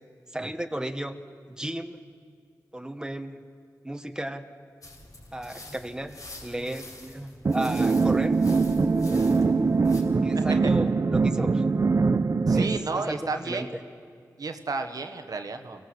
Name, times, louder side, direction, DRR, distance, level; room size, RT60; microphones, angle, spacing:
voice 1, 0.3-1.2 1.5-2.0 2.7-3.4 3.8-4.5 5.3-8.4 10.2-11.7 12.5-13.7, right 1 dB, 10° right, 7 dB, 1.4 m, -34 dB
sound 1, 4.8-10.0, left 1 dB, 60° left, 4.8 m, -45 dB
sound 2, 7.4-12.8, right 4 dB, 45° right, 0.7 m, -22 dB
voice 2, 10.3-10.7 12.5-13.7 14.4-15.8, right 3 dB, 65° right, 6 dB, 1.3 m, -32 dB
24.5 x 18.0 x 7.8 m, 2.1 s
cardioid pair, 45°, 7 cm